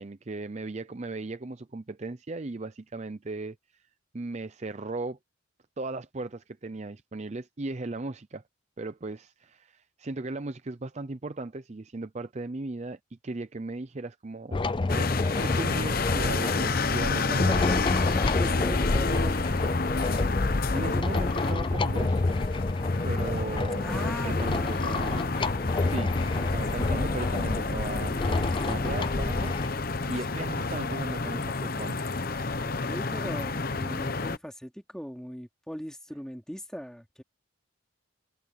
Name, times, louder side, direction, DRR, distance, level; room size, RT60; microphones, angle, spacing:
voice 1, 0.0-3.8 4.1-5.2 5.8-8.4 8.8-15.1 15.4-17.5 20.7-22.2 23.0-25.3 25.8-29.5 30.1-32.0, right 3 dB, 35° right, 0.5 m, -37 dB
sound 1, 14.5-29.7, left 2 dB, 25° left, 0.4 m, -28 dB
sound 2, 14.9-34.4, left 3 dB, 45° left, 0.9 m, -30 dB
voice 2, 17.3-19.5 23.8-24.9 32.5-37.2, equal, 5° left, 3.3 m, -39 dB
head